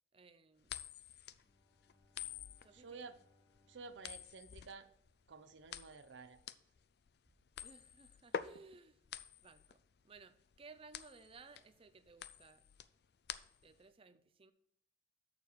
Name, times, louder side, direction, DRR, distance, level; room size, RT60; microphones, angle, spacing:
voice 1, 0.1-0.8 2.6-3.1 7.6-9.0 9.4-12.6 13.6-14.5, right 4 dB, 30° right, 0.5 m, -59 dB
sound 1, 0.6-13.8, left 8 dB, 60° left, 0.4 m, -48 dB
Bowed string instrument, 1.3-5.8, left 2 dB, 25° left, 0.8 m, -74 dB
voice 2, 2.7-3.2 3.7-4.9 5.3-6.4, right 4 dB, 80° right, 0.6 m, -52 dB
6.9 x 6.7 x 4.6 m
head